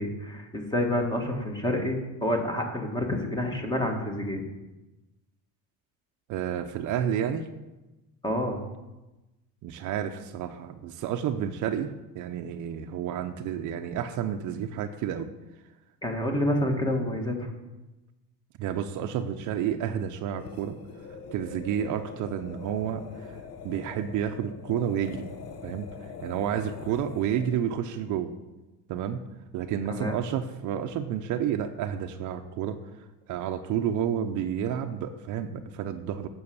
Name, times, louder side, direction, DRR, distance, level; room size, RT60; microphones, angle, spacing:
voice 1, 0.0-4.5 8.2-8.6 16.0-17.5 29.9-30.2, left 1 dB, 10° left, 2 dB, 1.7 m, -28 dB
voice 2, 6.3-7.5 9.6-15.3 18.6-20.8 21.1-23.4 23.6-25.2 25.6-28.3 28.9-29.2 29.5-36.3, right 9 dB, 55° right, 8 dB, 0.7 m, -30 dB
sound 1, 20.3-27.7, left 5 dB, 45° left, 1.0 m, -43 dB
9.6 x 6.4 x 7.0 m, 1.1 s
cardioid pair, 130°, 35 cm